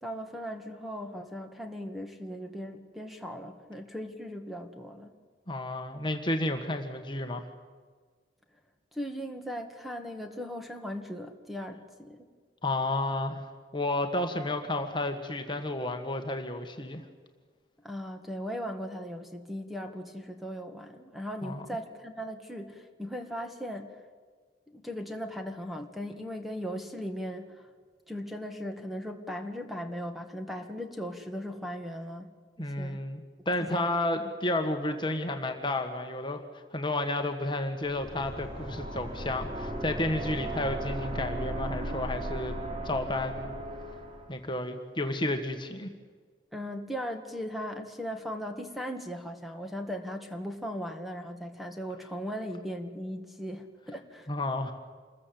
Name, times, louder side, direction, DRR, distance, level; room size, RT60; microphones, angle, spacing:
voice 1, 0.0-5.1 8.9-12.3 17.8-24.0 24.7-27.7 28.1-32.3 32.6-33.0 33.6-33.9 46.5-54.3, equal, ahead, 4 dB, 2.0 m, -38 dB
voice 2, 5.5-7.5 12.6-13.4 13.7-17.0 21.4-21.6 32.6-36.4 36.7-42.6 42.8-43.5 44.3-45.9 54.3-54.7, left 1 dB, 25° left, 5 dB, 1.7 m, -31 dB
sound 1, 37.9-44.3, right 1 dB, 35° right, 3.7 m, -36 dB
27.5 x 21.5 x 7.9 m, 1.5 s
head